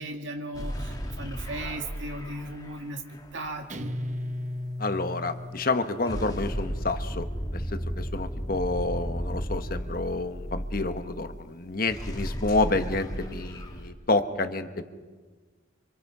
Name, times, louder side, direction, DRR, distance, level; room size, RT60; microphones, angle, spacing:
voice 1, 0.0-4.0, right 1 dB, 65° right, 3 dB, 2.3 m, -37 dB
sound 1, 0.5-3.5 6.0-11.4 11.7-13.9, equal, 20° left, 2.1 m, -34 dB
Guitar, 3.7-6.3, left 1 dB, 35° right, 1.0 m, -35 dB
voice 2, 4.8-14.8, left 2 dB, 45° left, 9 dB, 1.2 m, -29 dB
28.5 x 26.5 x 4.9 m, 1.5 s
head